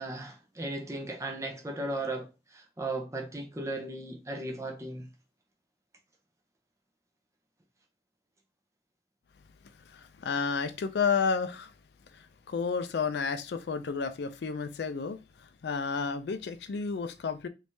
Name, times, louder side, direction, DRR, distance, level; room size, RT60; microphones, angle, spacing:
voice 1, 0.0-5.1, right 2 dB, 15° right, 0.5 m, -36 dB
voice 2, 9.9-11.7 12.1-17.5, left 5 dB, 70° left, 0.4 m, -31 dB
3.4 x 3.2 x 2.7 m
head